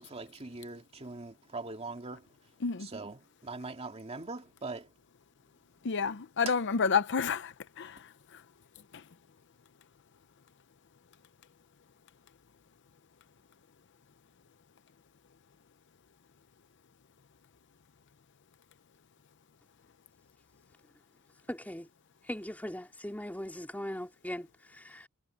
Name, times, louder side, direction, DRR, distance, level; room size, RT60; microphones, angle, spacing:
voice 1, 0.0-2.3 2.8-4.9, right 3 dB, 30° right, 2.3 m, -42 dB
voice 2, 5.8-8.4 8.9-9.0, left 5 dB, 60° left, 0.7 m, -30 dB
voice 3, 21.5-21.9 22.2-25.1, equal, 10° left, 3.4 m, -40 dB
head